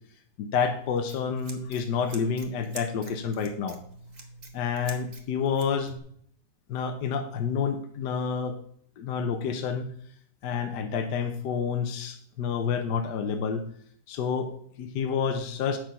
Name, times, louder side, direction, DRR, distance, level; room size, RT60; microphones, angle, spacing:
voice 1, 0.4-3.8 4.5-5.9 6.7-8.6 9.0-9.9 10.4-13.7 14.1-15.8, left 6 dB, 70° left, 6 dB, 1.4 m, -29 dB
Scissors, 0.6-6.0, right 2 dB, 30° right, 1.1 m, -46 dB
8.5 x 6.2 x 5.4 m, 0.63 s
omnidirectional pair, 1.9 m